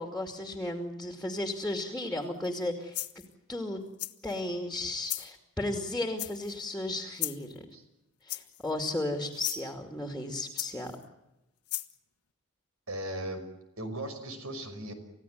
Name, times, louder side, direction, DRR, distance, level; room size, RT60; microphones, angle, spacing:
voice 1, 0.0-3.0 3.5-3.8 4.2-7.6 8.2-10.9, left 1 dB, 5° left, 5 dB, 2.6 m, -34 dB
sound 1, 2.4-2.6 2.9-3.3 4.0-4.4 5.0-5.3 6.2-6.6 7.2-7.5 8.3-8.7 9.3-9.6 10.6-11.0 11.7-11.9, left 17 dB, 80° left, 1.3 m, -36 dB
voice 2, 12.9-13.4 13.8-14.9, right 1 dB, 70° right, 7 dB, 5.8 m, -37 dB
29.5 x 16.0 x 9.4 m, 0.93 s
head